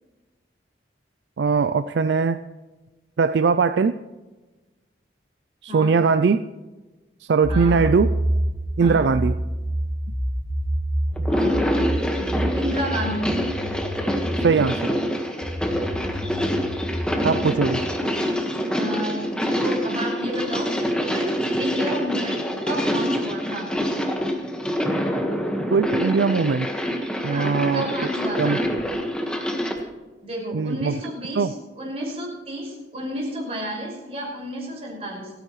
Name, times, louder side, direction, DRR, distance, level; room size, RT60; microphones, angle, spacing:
voice 1, 1.4-2.4 3.2-4.0 5.6-6.5 7.2-8.1 8.8-9.4 14.4-15.0 17.2-17.8 25.7-26.7 27.2-27.9 28.4-28.6 30.5-31.0 31.4-31.5, right 5 dB, 75° right, 12 dB, 0.4 m, -20 dB
sound 1, 7.4-14.7 15.4-17.9, right 1 dB, 40° left, 3.8 m, -27 dB
sound 2, 11.2-29.8, equal, 5° left, 1.5 m, -26 dB
voice 2, 11.3-11.6 12.5-13.2 18.7-20.7 21.1-21.3 21.6-23.7 27.2-28.6 30.2-35.3, equal, 35° right, -3 dB, 5.8 m, -31 dB
29.0 x 10.0 x 3.2 m, 1.2 s
head